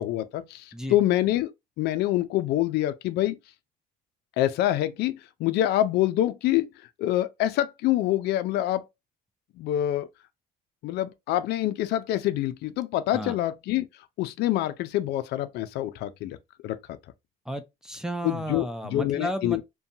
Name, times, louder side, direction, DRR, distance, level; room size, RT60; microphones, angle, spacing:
voice 1, 0.0-1.5 1.8-3.4 4.4-6.7 7.0-8.8 9.6-10.1 10.8-13.9 14.2-16.4 16.6-16.8 18.2-19.6, left 14 dB, 75° left, 0.4 m, -26 dB
voice 2, 17.5-19.6, equal, 5° right, 0.4 m, -33 dB
2.6 x 2.2 x 2.7 m
cardioid pair, 110°, 17 cm